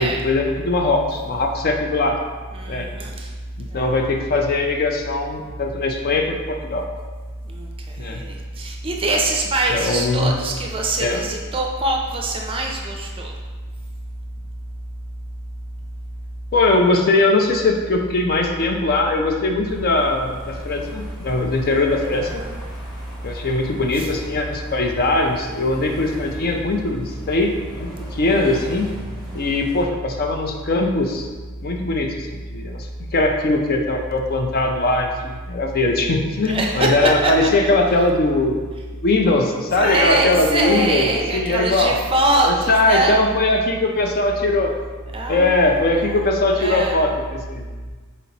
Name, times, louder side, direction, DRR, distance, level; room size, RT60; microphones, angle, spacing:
voice 1, 0.0-2.2 2.7-2.9 3.6-6.8 8.0-8.2 9.7-10.4 11.0-11.2 16.5-22.4 23.2-28.9 29.3-31.3 31.6-38.6 39.0-42.0 42.4-44.8 45.3-47.7, left 2 dB, 45° left, 3 dB, 0.4 m, -20 dB
voice 2, 2.5-3.1 3.7-3.9 7.5-7.7 8.0-13.3 22.1-22.5 24.0-24.1 28.3-28.6 36.4-37.5 39.8-43.2 45.1-46.2 46.6-47.0, right 2 dB, 25° right, 1 dB, 0.5 m, -23 dB
sound 1, 19.6-29.8, equal, ahead, 1.0 m, -40 dB
4.2 x 2.9 x 4.0 m, 1.4 s
head